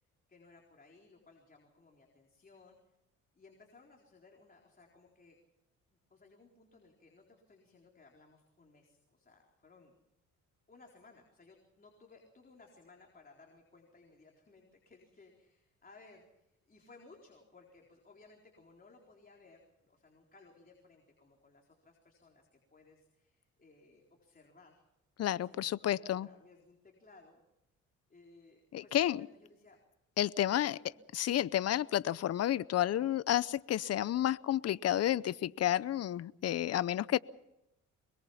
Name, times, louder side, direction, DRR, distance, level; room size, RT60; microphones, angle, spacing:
voice 1, 0.3-2.9 3.3-5.4 6.1-10.0 10.7-24.8 25.4-27.4 28.1-29.8 30.5-30.9, left 3 dB, 30° left, 4.2 m, -61 dB
voice 2, 25.2-26.3 28.7-29.3 30.2-30.8 31.1-37.2, left 12 dB, 55° left, 0.7 m, -31 dB
24.0 x 22.0 x 5.8 m
cardioid pair, 90°, 30 cm